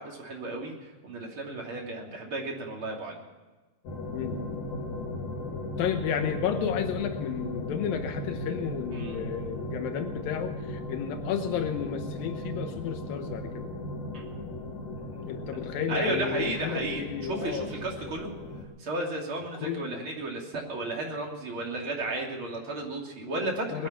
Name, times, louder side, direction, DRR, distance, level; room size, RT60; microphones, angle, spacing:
voice 1, 0.0-3.2 8.9-9.3 14.1-14.3 15.9-17.0 17.3-18.3 18.8-23.9, right 2 dB, 35° right, -1 dB, 2.9 m, -33 dB
sound 1, 3.8-18.6, left 1 dB, 55° left, 3.2 m, -37 dB
voice 2, 5.8-13.7 15.3-17.7 19.6-20.0 23.2-23.9, left 8 dB, 90° left, 6 dB, 2.0 m, -32 dB
21.0 x 11.5 x 5.8 m, 1.2 s
omnidirectional pair, 5.4 m